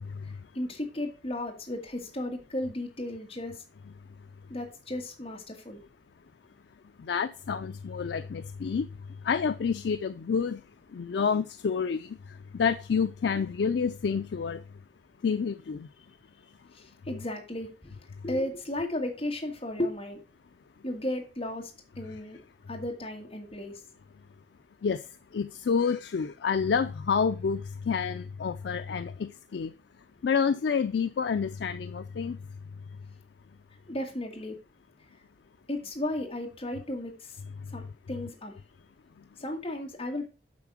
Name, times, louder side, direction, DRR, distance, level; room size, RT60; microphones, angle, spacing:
voice 1, 0.6-3.6 4.5-5.8 16.7-17.9 18.2-20.2 20.8-21.7 22.0-22.4 22.7-23.8 33.9-34.6 35.7-37.4 37.7-38.5 39.4-40.2, left 1 dB, 35° left, 1.9 m, -34 dB
voice 2, 7.1-8.9 9.2-10.6 10.9-12.1 12.5-14.6 15.2-15.9 24.8-25.0 25.3-29.7 30.2-32.4, left 6 dB, 75° left, 0.4 m, -28 dB
8.5 x 4.2 x 6.0 m
head